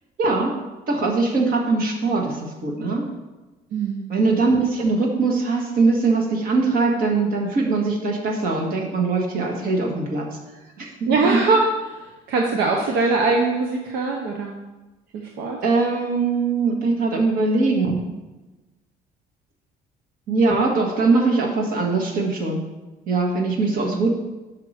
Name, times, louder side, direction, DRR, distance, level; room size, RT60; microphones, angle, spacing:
voice 1, 0.2-0.5 0.9-3.0 4.1-10.3 10.8-11.1 15.6-18.0 20.3-22.6 23.1-24.1, right 3 dB, 60° right, 1 dB, 1.6 m, -21 dB
voice 2, 3.7-4.0 11.1-14.5 15.1-15.6, right 3 dB, 85° right, 1 dB, 0.8 m, -22 dB
5.9 x 4.7 x 6.3 m, 1.1 s
cardioid pair, 110°, 17 cm